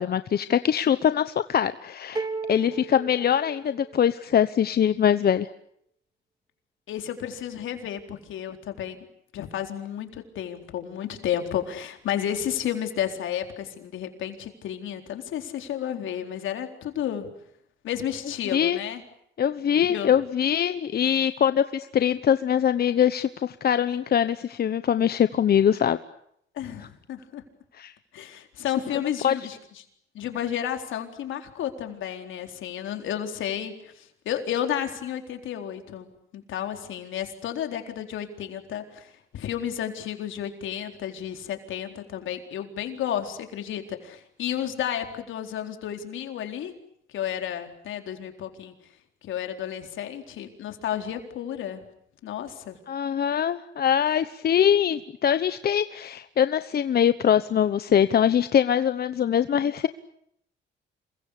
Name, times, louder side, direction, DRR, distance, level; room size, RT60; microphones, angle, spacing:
voice 1, 0.0-5.5 18.5-18.8 19.4-26.0 27.8-27.9 29.2-29.4 52.9-59.9, left 9 dB, 50° left, 12 dB, 1.0 m, -23 dB
sound 1, 2.2-4.2, right 4 dB, 20° right, 3.3 m, -34 dB
voice 2, 6.9-9.0 9.3-17.3 17.8-19.0 19.8-20.2 26.5-27.4 28.1-29.6 30.1-46.7 47.1-48.7 49.2-51.9 52.2-52.8, left 10 dB, 80° left, 5 dB, 4.1 m, -32 dB
27.5 x 23.0 x 8.5 m, 0.74 s
cardioid pair, 90°, 20 cm